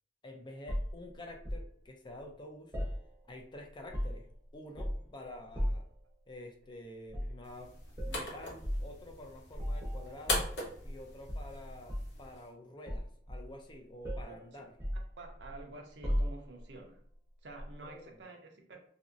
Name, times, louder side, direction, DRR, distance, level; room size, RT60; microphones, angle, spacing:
voice 1, 0.2-2.7 3.3-5.8 6.3-10.5 10.8-14.7 17.8-18.2, left 1 dB, 25° left, 2 dB, 0.5 m, -49 dB
sound 1, 0.7-1.7 2.7-3.5 3.7-4.3 4.8-5.1 5.5-6.0 7.1-7.4 7.9-8.2 8.6-8.9 9.5-11.0 11.3-12.2 12.9-13.7 14.0-14.3 14.8-15.6 16.0-16.6 17.6-17.7, equal, 15° right, 0.8 m, -36 dB
sound 2, 7.4-12.5, left 2 dB, 80° left, 0.9 m, -40 dB
voice 2, 15.2-17.0 17.4-18.8, right 2 dB, 80° right, 2 dB, 0.7 m, -49 dB
2.9 x 2.6 x 2.5 m, 0.62 s
head